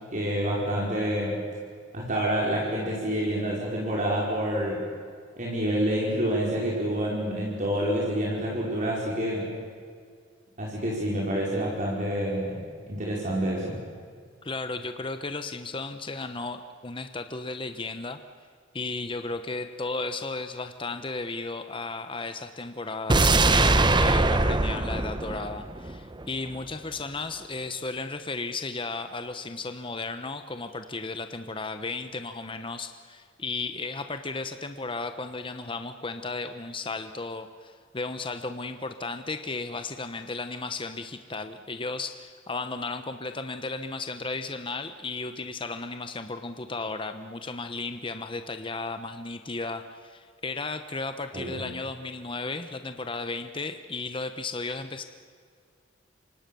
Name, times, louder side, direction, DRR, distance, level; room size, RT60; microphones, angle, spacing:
voice 1, 0.1-1.4 1.9-4.8 5.4-9.5 10.6-12.6 12.9-13.7 51.3-51.6, equal, 40° right, -3 dB, 5.0 m, -28 dB
voice 2, 14.4-18.2 18.7-55.0, left 3 dB, 25° left, 8 dB, 1.0 m, -34 dB
sound 1, 23.1-26.2 26.5-26.6, right 2 dB, 25° right, 1.0 m, -22 dB
28.0 x 25.5 x 7.0 m, 2.1 s
head